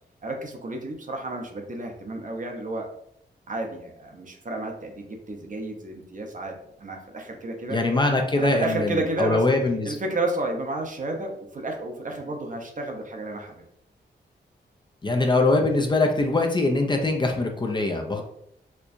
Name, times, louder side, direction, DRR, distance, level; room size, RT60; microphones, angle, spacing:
voice 1, 0.2-2.9 3.5-7.8 8.4-9.4 9.8-13.5, right 2 dB, 45° right, 2 dB, 0.7 m, -31 dB
voice 2, 7.7-10.0 15.0-18.2, left 2 dB, 25° left, 2 dB, 0.5 m, -22 dB
4.4 x 2.3 x 2.6 m, 0.73 s
wide cardioid pair, 90°, 18 cm